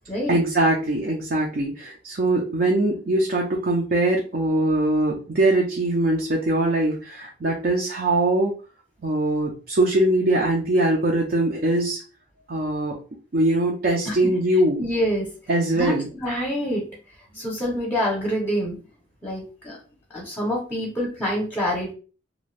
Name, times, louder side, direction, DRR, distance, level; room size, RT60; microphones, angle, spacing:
voice 1, 0.3-8.5 9.0-12.0 12.5-13.0 13.3-14.8 15.5-16.1, right 1 dB, 50° right, -1 dB, 0.5 m, -22 dB
voice 2, 14.8-15.3 15.7-16.9 17.3-18.8 19.2-19.8 20.1-21.9, equal, 10° left, -2 dB, 0.7 m, -26 dB
2.5 x 2.2 x 3.2 m, 0.36 s
head